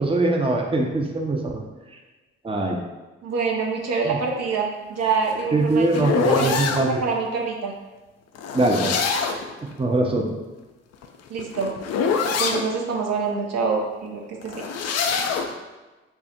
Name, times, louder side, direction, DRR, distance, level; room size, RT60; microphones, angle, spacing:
voice 1, 0.0-1.6 2.4-2.8 4.1-4.2 5.5-7.0 8.5-9.0 9.8-10.3, right 2 dB, 20° right, 1 dB, 0.6 m, -22 dB
voice 2, 3.2-6.6 6.9-7.7 11.3-11.7 12.4-14.7, right 4 dB, 60° right, 0 dB, 0.7 m, -26 dB
sound 1, 5.1-6.9 8.3-9.5 10.9-12.7 14.4-15.5, left 5 dB, 60° left, 0.5 m, -25 dB
3.6 x 2.1 x 4.2 m, 1.2 s
hypercardioid pair, 45°, 30 cm